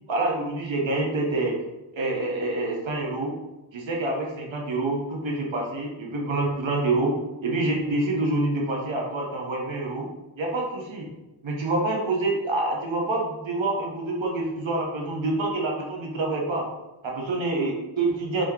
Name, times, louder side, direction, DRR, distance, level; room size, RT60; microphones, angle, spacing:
voice 1, 0.1-1.6 1.9-3.3 3.7-7.1 7.4-10.1 10.4-11.1 11.4-16.7 17.0-18.5, right 2 dB, 70° right, -1 dB, 0.9 m, -27 dB
5.0 x 2.8 x 3.6 m, 1.1 s
wide cardioid pair, 80°, 48 cm